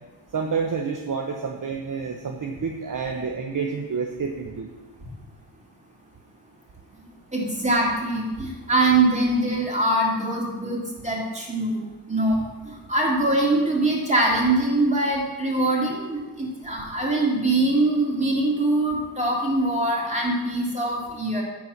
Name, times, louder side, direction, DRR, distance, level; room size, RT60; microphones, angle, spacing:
voice 1, 0.3-4.7, right 5 dB, 40° right, 2 dB, 1.1 m, -29 dB
voice 2, 7.3-21.4, right 2 dB, 15° right, -3 dB, 3.3 m, -23 dB
11.0 x 4.7 x 7.4 m, 1.2 s
cardioid pair, 70°, 50 cm